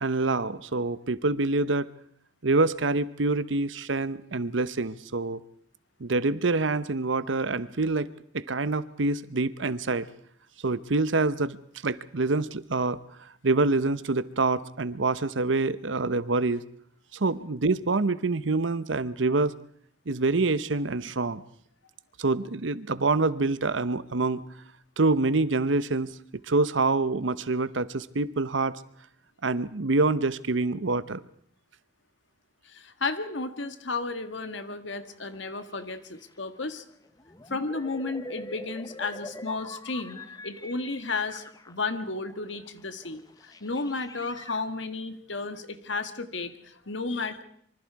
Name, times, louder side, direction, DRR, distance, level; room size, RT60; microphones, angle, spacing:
voice 1, 0.0-1.9 2.4-5.4 6.0-8.1 8.3-10.1 10.6-11.6 11.8-13.0 13.4-16.6 17.1-19.5 20.1-21.4 22.2-24.4 25.0-26.2 26.4-28.8 29.4-31.2, right 3 dB, 80° right, 15 dB, 0.9 m, -26 dB
voice 2, 32.6-36.8 37.5-47.4, left 3 dB, 75° left, 9 dB, 1.7 m, -33 dB
sound 1, 34.9-36.6 36.9-44.6, left 2 dB, 20° left, 0.9 m, -45 dB
25.5 x 24.5 x 4.8 m, 0.62 s
head